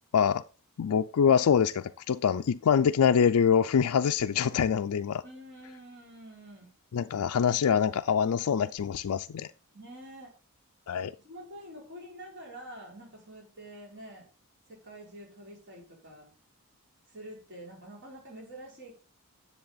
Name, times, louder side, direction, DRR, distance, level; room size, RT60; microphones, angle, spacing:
voice 1, 0.8-5.2 6.9-9.5 10.9-11.1, left 7 dB, 85° left, 8 dB, 0.4 m, -25 dB
voice 2, 5.2-6.7 9.7-10.3 11.0-14.3 14.7-16.3 17.1-18.9, right 1 dB, 55° right, -2 dB, 5.5 m, -47 dB
10.5 x 7.5 x 4.0 m, 0.36 s
head